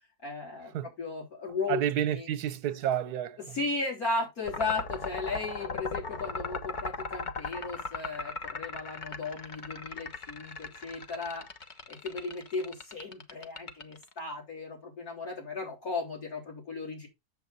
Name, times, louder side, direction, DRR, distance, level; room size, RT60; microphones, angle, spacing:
voice 1, 0.2-1.8 2.1-2.3 3.5-11.5 11.9-17.1, left 3 dB, 65° left, 4.3 m, -36 dB
voice 2, 1.7-3.4, right 10 dB, 75° right, 1.3 m, -30 dB
sound 1, 4.5-14.2, left 4 dB, 35° left, 0.8 m, -38 dB
7.8 x 7.0 x 4.1 m
omnidirectional pair, 1.7 m